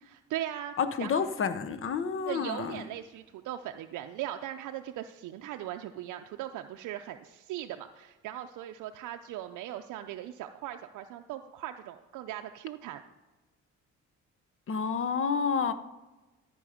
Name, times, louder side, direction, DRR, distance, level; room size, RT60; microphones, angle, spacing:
voice 1, 0.0-1.2 2.3-13.0, right 12 dB, 85° right, 0.5 m, -39 dB
voice 2, 0.8-2.9 14.7-15.7, left 6 dB, 45° left, 0.8 m, -29 dB
13.0 x 5.3 x 5.0 m
cardioid pair, 90°, 30 cm